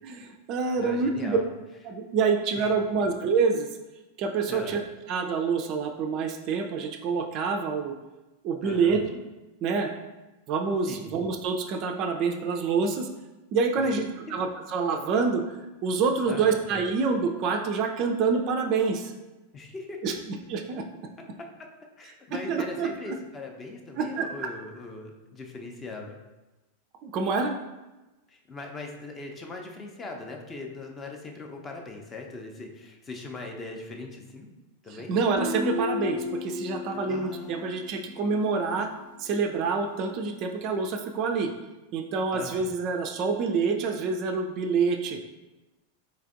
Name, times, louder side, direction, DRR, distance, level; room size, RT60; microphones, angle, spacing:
voice 1, 0.0-1.4 1.9-3.7 4.2-4.8 5.1-8.0 8.4-9.0 9.6-9.9 10.5-13.1 13.5-19.1 20.0-20.1 20.5-20.8 22.5-23.2 23.9-24.3 27.0-27.6 34.9-38.9 39.2-41.5 41.9-45.2, right 5 dB, 40° right, 5 dB, 0.3 m, -27 dB
voice 2, 0.7-1.5 2.6-2.7 4.5-4.8 8.6-9.0 10.9-11.1 13.8-14.3 16.3-16.6 19.5-20.2 21.4-21.5 22.0-26.2 28.3-34.5 34.8-35.2 37.1-37.9 42.3-42.7, left 3 dB, 20° left, 2 dB, 0.5 m, -40 dB
Guitar, 35.4-39.0, left 3 dB, 80° left, 0.7 m, -34 dB
4.3 x 3.2 x 2.5 m, 1.1 s
figure-of-eight pair, 90°, 0 cm